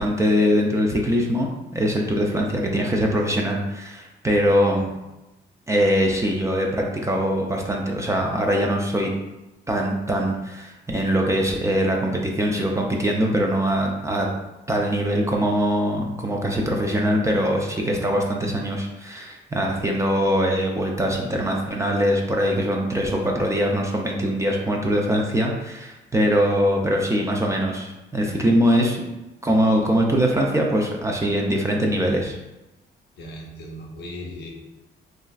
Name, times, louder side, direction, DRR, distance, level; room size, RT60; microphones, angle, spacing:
voice 1, 0.0-4.9 5.7-9.1 9.7-14.3 14.7-29.1 29.4-32.4, equal, 15° right, 0 dB, 0.4 m, -22 dB
voice 2, 33.2-34.5, equal, 60° left, 0 dB, 0.6 m, -37 dB
3.0 x 2.4 x 2.3 m, 1.0 s
cardioid pair, 90°, 20 cm